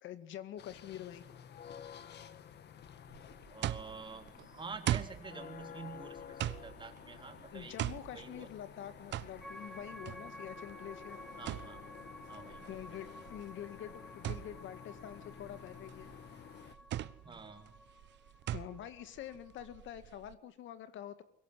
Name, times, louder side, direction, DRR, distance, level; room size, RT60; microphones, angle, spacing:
voice 1, 0.0-1.4 7.5-11.2 12.7-16.1 18.5-21.2, left 11 dB, 75° left, 12 dB, 2.1 m, -46 dB
sound 1, 0.6-16.7, left 8 dB, 60° left, 1.6 m, -52 dB
sound 2, 3.1-20.3, right 13 dB, 65° right, 1.1 m, -42 dB
voice 2, 3.5-7.7 8.1-8.5 11.4-11.8 12.3-12.7 17.2-17.8, right 4 dB, 25° right, 4 dB, 3.9 m, -48 dB
sound 3, 9.4-19.9, equal, ahead, 1.4 m, -53 dB
24.5 x 22.5 x 9.8 m, 0.70 s
cardioid pair, 130°, 20 cm